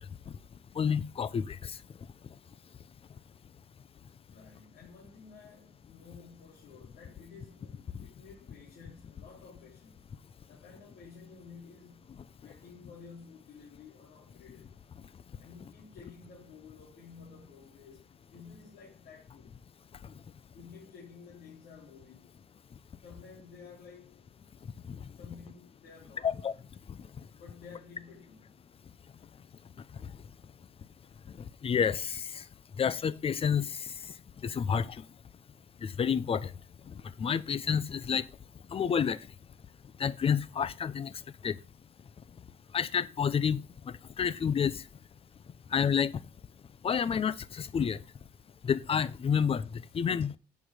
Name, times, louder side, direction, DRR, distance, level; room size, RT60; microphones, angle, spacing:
voice 1, 0.8-1.6 26.2-26.5 31.6-32.2 32.8-33.7 34.4-34.9 35.8-36.5 37.2-38.2 38.7-39.2 40.0-41.1 41.4-41.5 42.7-43.6 44.2-44.7 45.7-46.1 46.8-48.0 48.7-49.6 49.9-50.3, left 7 dB, 35° left, 0.8 m, -28 dB
voice 2, 4.3-10.1 10.5-12.1 12.4-14.7 15.4-19.5 20.5-22.4 23.0-24.3 25.1-26.4 27.0-28.5, left 5 dB, 60° left, 3.8 m, -52 dB
8.7 x 7.2 x 4.9 m
cardioid pair, 110°, 17 cm